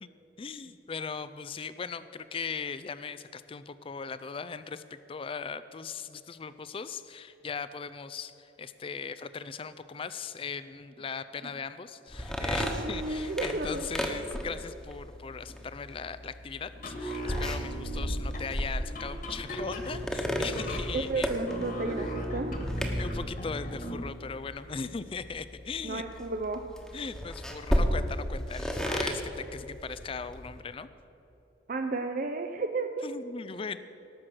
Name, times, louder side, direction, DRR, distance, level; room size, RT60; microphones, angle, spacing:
voice 1, 0.4-21.3 22.9-26.0 26.9-30.9 33.0-33.8, left 5 dB, 30° left, 14 dB, 0.4 m, -39 dB
sound 1, 12.1-30.6, equal, 5° left, 1.1 m, -35 dB
voice 2, 12.6-13.9 20.9-22.7 25.8-26.6 31.7-33.0, right 3 dB, 45° right, 6 dB, 0.6 m, -33 dB
sound 2, 16.7-24.1, equal, 45° left, 1.8 m, -36 dB
18.5 x 6.2 x 7.7 m, 2.9 s
head